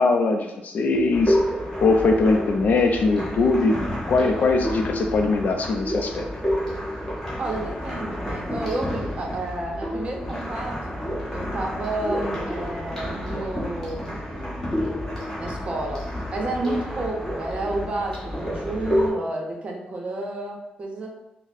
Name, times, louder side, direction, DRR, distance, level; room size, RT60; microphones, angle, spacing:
voice 1, 0.0-1.4 1.8-6.3, left 3 dB, 65° left, 4 dB, 0.4 m, -21 dB
sound 1, 1.1-19.1, equal, 15° left, 1.0 m, -29 dB
voice 2, 7.4-11.0 11.3-14.7 15.4-21.1, right 2 dB, 45° right, 0 dB, 0.6 m, -31 dB
4.0 x 2.0 x 2.5 m, 0.92 s
cardioid pair, 100°, 3 cm